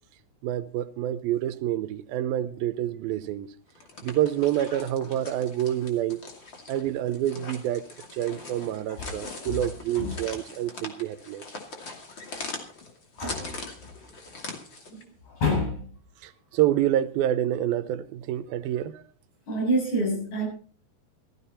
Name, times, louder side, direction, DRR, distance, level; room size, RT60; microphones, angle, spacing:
voice 1, 0.4-3.5 4.0-6.2 6.7-7.8 8.1-11.5 16.2-19.0, right 12 dB, 90° right, 2.7 m, -27 dB
sound 1, 3.7-15.0, left 3 dB, 35° left, 2.8 m, -41 dB
voice 2, 13.2-13.6 14.9-15.9 19.5-20.5, equal, 55° left, 8.7 m, -27 dB
14.5 x 14.5 x 4.2 m
omnidirectional pair, 4.1 m